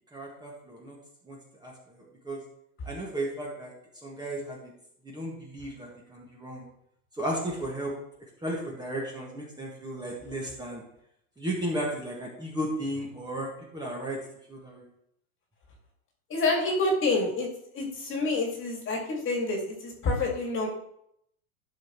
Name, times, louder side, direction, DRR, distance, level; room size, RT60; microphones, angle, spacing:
voice 1, 0.1-1.0 1.3-2.4 2.8-3.7 4.0-4.7 5.0-6.7 7.1-7.9 8.4-10.8 11.4-14.2 14.5-14.9, right 1 dB, 10° right, -3 dB, 1.7 m, -34 dB
voice 2, 16.3-17.5 17.7-20.7, left 2 dB, 25° left, 0 dB, 2.2 m, -27 dB
11.5 x 6.3 x 3.1 m, 0.75 s
supercardioid pair, 125°, 44 cm